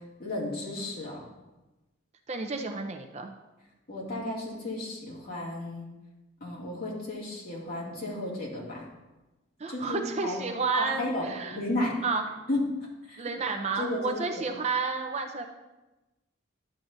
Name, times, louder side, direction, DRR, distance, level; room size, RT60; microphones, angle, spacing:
voice 1, 0.2-1.2 3.9-5.9 6.4-8.8 9.6-10.4 10.7-11.9 12.5-12.8 13.1-13.3 13.8-14.2, left 1 dB, 50° left, -5 dB, 2.3 m, -33 dB
voice 2, 2.3-3.3 9.6-11.6 12.0-12.3 13.2-15.4, right 4 dB, 30° right, 5 dB, 0.5 m, -31 dB
11.0 x 7.3 x 2.6 m, 1.1 s
head